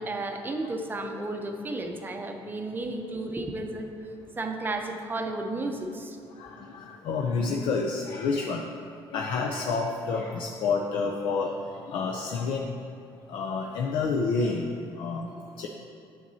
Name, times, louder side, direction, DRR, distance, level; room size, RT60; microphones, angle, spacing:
voice 1, 0.0-3.9 4.4-6.2, right 2 dB, 20° right, 4 dB, 0.6 m, -33 dB
voice 2, 6.3-8.7 9.1-12.8 13.3-15.7, left 4 dB, 65° left, 1 dB, 0.5 m, -29 dB
9.0 x 7.0 x 2.7 m, 2.6 s
cardioid pair, 120°, 10 cm